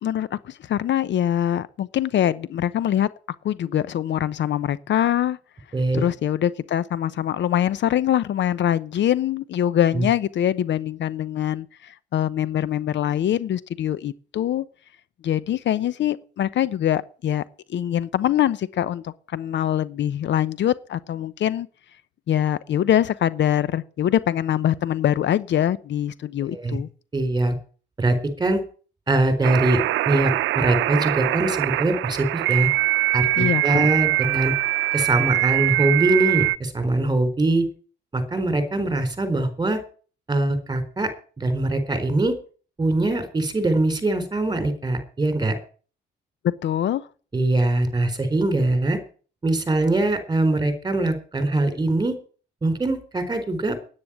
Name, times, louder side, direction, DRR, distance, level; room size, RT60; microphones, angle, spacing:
voice 1, 0.0-3.1 3.4-5.4 5.9-14.6 15.2-17.4 17.7-21.7 22.3-26.9 33.4-33.9 46.4-47.1, left 11 dB, 65° left, 0.9 m, -23 dB
voice 2, 27.1-27.6 28.0-28.6 29.1-32.7 33.1-34.5 34.9-37.7 38.1-39.8 40.3-41.1 41.4-42.3 42.8-45.5 47.3-49.0 49.4-52.2 52.6-53.8, right 2 dB, 20° right, 4.2 m, -22 dB
sound 1, 29.4-36.6, right 17 dB, 85° right, 0.6 m, -23 dB
9.7 x 9.7 x 8.8 m
cardioid pair, 90°, 20 cm